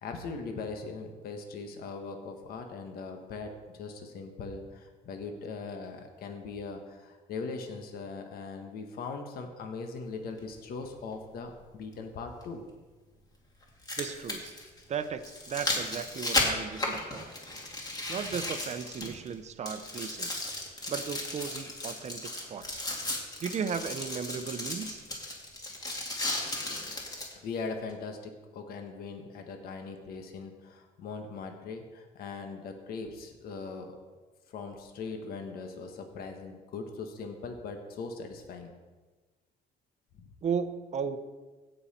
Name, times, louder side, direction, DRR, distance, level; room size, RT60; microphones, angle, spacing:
voice 1, 0.0-12.7 27.3-34.0 34.5-38.7 40.2-40.3, left 4 dB, 65° left, 4 dB, 1.4 m, -40 dB
sound 1, 10.4-10.5 12.4-12.5 13.6-19.3 19.6-27.3 27.9-28.0, left 2 dB, 20° left, 2.2 m, -35 dB
voice 2, 14.0-14.5 14.9-17.3 18.1-20.4 20.9-22.8 23.4-25.0 40.4-41.2, right 6 dB, 40° right, 11 dB, 0.8 m, -35 dB
16.0 x 5.6 x 4.3 m, 1.3 s
cardioid pair, 110°, 17 cm